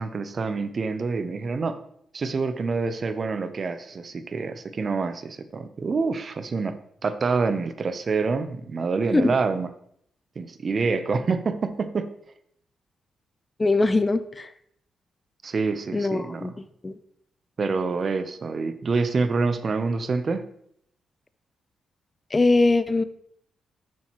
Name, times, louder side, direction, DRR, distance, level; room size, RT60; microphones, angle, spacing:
voice 1, 0.0-1.8 2.1-6.7 7.0-9.7 10.4-12.1 15.4-16.5 17.6-20.4, right 4 dB, 50° right, 11 dB, 0.7 m, -26 dB
voice 2, 13.6-14.5 15.9-17.0 22.3-23.0, left 3 dB, 30° left, 13 dB, 0.5 m, -22 dB
7.3 x 6.3 x 3.0 m, 0.69 s
supercardioid pair, 60°, 0 cm